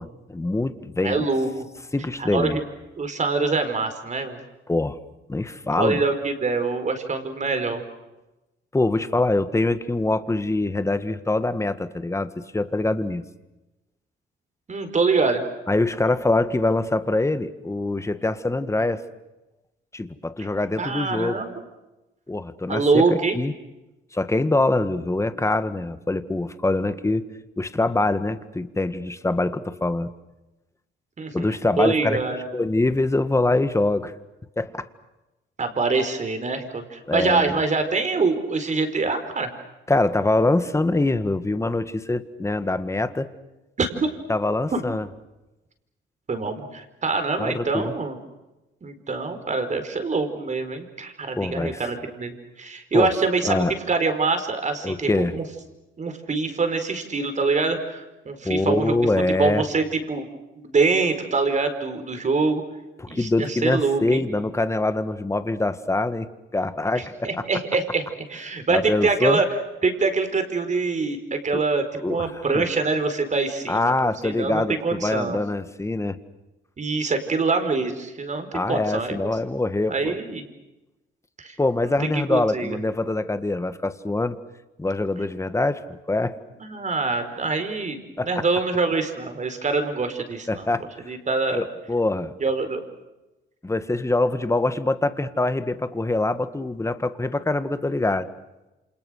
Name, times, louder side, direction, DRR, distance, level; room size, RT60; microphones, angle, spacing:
voice 1, 0.0-1.2 1.9-2.6 4.7-5.0 5.3-6.0 8.7-13.2 15.7-19.0 19.9-21.4 22.3-23.5 24.1-27.2 27.6-30.1 31.3-32.2 32.5-34.1 34.6-34.9 37.1-37.5 39.9-43.3 44.3-45.1 47.4-47.9 51.3-51.8 52.9-53.1 53.4-53.8 54.8-55.3 58.4-59.6 63.0-67.3 68.5-69.4 71.5-71.6 72.0-72.6 73.7-76.2 78.5-80.1 81.6-84.4 84.8-86.4 88.2-88.4 90.5-90.9 91.5-92.3 93.6-98.3, left 2 dB, 15° left, 11 dB, 1.8 m, -24 dB
voice 2, 1.0-1.7 2.2-2.6 3.0-4.4 5.8-7.8 14.7-15.4 20.8-21.5 22.7-23.4 31.2-32.4 35.6-39.5 43.8-44.1 44.7-44.8 46.3-48.2 48.8-55.4 56.0-59.1 59.4-60.3 60.5-62.6 63.1-64.2 66.9-68.0 68.3-69.5 69.8-73.9 74.2-75.4 76.8-79.3 79.9-80.4 81.4-81.6 82.1-82.8 86.6-90.7 91.0-91.6 92.4-92.8, right 4 dB, 35° right, 7 dB, 4.9 m, -25 dB
29.0 x 27.0 x 6.6 m, 1.0 s
cardioid pair, 90°, 20 cm